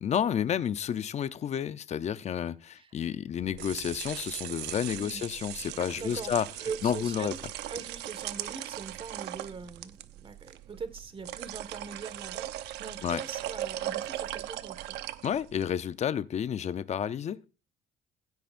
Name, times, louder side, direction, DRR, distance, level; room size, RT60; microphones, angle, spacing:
voice 1, 0.0-6.5 6.8-7.3 13.0-13.2 15.2-17.4, left 9 dB, 40° left, 0.7 m, -30 dB
sound 1, 3.4-15.7, right 13 dB, 85° right, 0.8 m, -39 dB
voice 2, 4.9-5.2 6.0-6.3 6.6-7.4 7.7-15.0, right 5 dB, 30° right, 1.7 m, -42 dB
16.0 x 9.2 x 2.6 m
cardioid pair, 110°, 17 cm